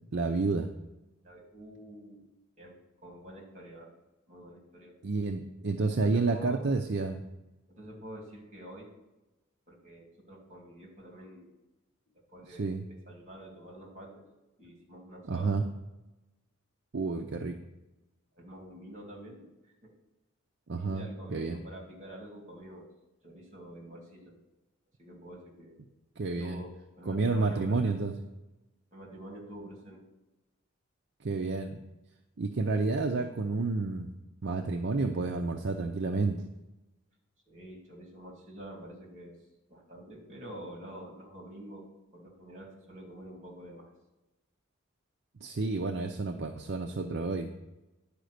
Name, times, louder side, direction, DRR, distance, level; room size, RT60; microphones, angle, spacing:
voice 1, 0.1-0.7 5.0-7.2 12.5-12.8 15.3-15.6 16.9-17.6 20.7-21.6 26.2-26.6 27.1-28.1 31.2-31.8 32.4-34.1 34.4-36.4 45.4-47.6, right 3 dB, 55° right, 5 dB, 0.5 m, -30 dB
voice 2, 1.2-2.2 2.6-3.9 4.3-4.9 5.9-6.6 7.7-8.9 9.7-11.6 12.3-14.2 14.6-15.6 17.0-17.4 18.3-19.5 19.8-19.9 20.8-22.9 23.2-24.3 25.0-25.8 26.4-28.0 28.9-30.0 37.5-39.3 39.7-41.9 42.1-43.9, right 1 dB, 35° right, 0 dB, 2.4 m, -47 dB
10.5 x 5.0 x 6.5 m, 1.0 s
head